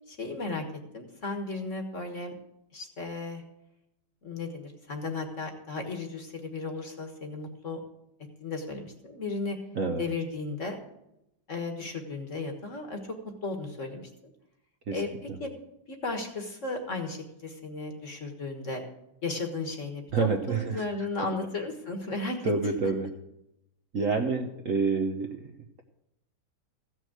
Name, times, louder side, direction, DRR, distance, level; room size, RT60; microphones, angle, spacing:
voice 1, 0.1-0.6 0.9-2.3 2.7-3.4 4.2-7.8 8.4-9.6 10.0-10.8 11.5-13.0 13.4-14.3 14.9-15.5 15.9-18.8 19.2-22.5, left 3 dB, 40° left, 4 dB, 1.6 m, -35 dB
voice 2, 20.1-20.8 22.4-23.1 23.9-25.3, right 4 dB, 50° right, 3 dB, 1.1 m, -27 dB
15.0 x 6.3 x 7.9 m, 0.86 s
omnidirectional pair, 2.2 m